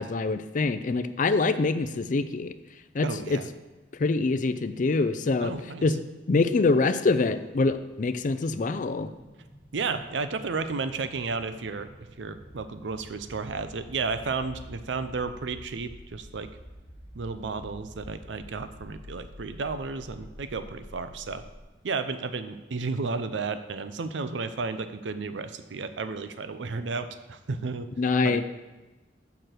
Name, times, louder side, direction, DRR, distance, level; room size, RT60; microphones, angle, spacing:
voice 1, 0.0-2.5 2.9-3.4 4.0-5.5 5.8-6.0 6.3-9.1 28.0-28.4, left 3 dB, 45° left, 11 dB, 0.4 m, -25 dB
voice 2, 3.0-3.5 5.4-5.8 9.7-11.9 12.2-16.5 17.1-21.4 21.8-27.9 28.2-28.4, right 4 dB, 90° right, 11 dB, 0.6 m, -33 dB
sound 1, 7.8-21.6, equal, 5° right, 1.1 m, -49 dB
6.8 x 5.9 x 6.5 m, 1.2 s
head